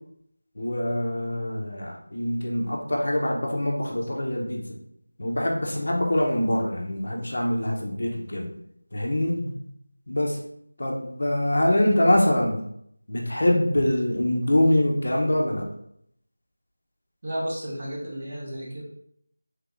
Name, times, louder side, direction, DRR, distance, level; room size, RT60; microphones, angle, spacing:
voice 1, 0.6-4.6 5.2-8.5 8.9-9.6 10.1-10.4 10.8-12.6 13.1-15.7, left 1 dB, 50° left, -1 dB, 0.6 m, -24 dB
voice 2, 17.2-18.8, right 1 dB, 25° right, -4 dB, 0.6 m, -32 dB
3.3 x 3.0 x 2.4 m, 0.72 s
figure-of-eight pair, 180°, 0 cm